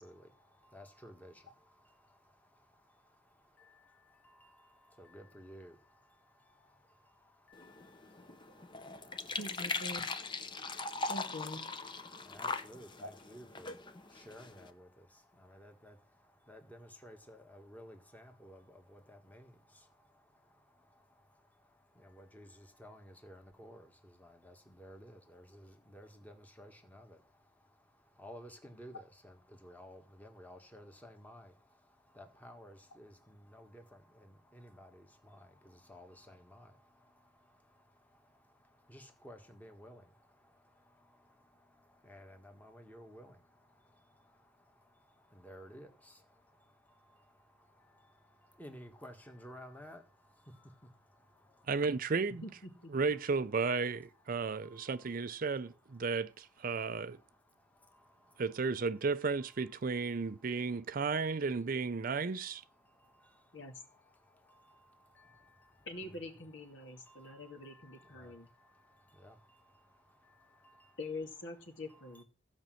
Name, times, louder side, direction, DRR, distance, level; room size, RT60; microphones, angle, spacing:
voice 1, 0.0-9.4 10.5-11.1 11.7-51.7 53.1-53.2 53.8-53.9 54.3-55.2 55.9-58.7 59.6-61.0 62.4-71.0 71.7-72.2, equal, 10° left, 1.7 m, -57 dB
sound 1, 7.5-14.7, left 3 dB, 25° left, 0.8 m, -41 dB
voice 2, 9.4-10.1 11.1-11.7 52.4-52.9 63.5-63.7 65.9-68.5 71.0-72.2, left 2 dB, 65° left, 2.4 m, -44 dB
voice 3, 51.7-52.4 52.9-57.2 58.4-62.6, right 4 dB, 45° right, 0.5 m, -34 dB
15.0 x 5.3 x 7.7 m
head